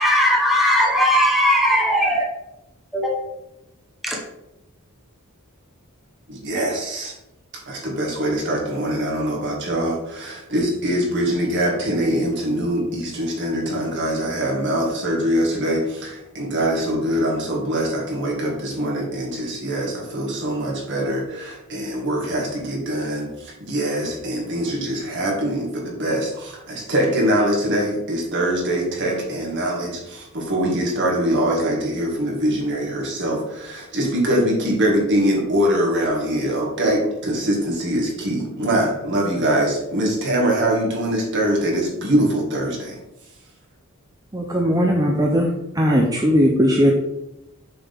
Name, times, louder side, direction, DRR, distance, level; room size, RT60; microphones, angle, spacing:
voice 1, 0.0-2.2 2.9-3.1 4.0-4.2, equal, ahead, -2 dB, 1.1 m, -18 dB
voice 2, 6.3-7.1 7.7-43.0, right 1 dB, 55° right, -1 dB, 2.1 m, -23 dB
voice 3, 44.3-45.5 45.8-46.9, equal, 15° right, 0 dB, 0.7 m, -18 dB
6.8 x 6.0 x 3.6 m, 0.88 s
head